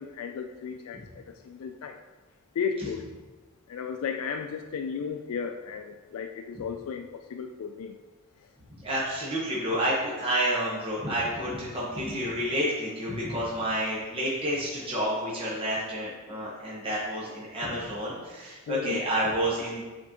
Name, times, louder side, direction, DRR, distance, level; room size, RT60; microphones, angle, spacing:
voice 1, 0.0-2.0 2.6-3.2 3.7-7.9 18.7-19.0, left 6 dB, 75° left, 6 dB, 0.3 m, -34 dB
voice 2, 8.8-19.8, equal, 25° right, -7 dB, 1.2 m, -29 dB
7.3 x 4.3 x 2.9 m, 1.3 s
head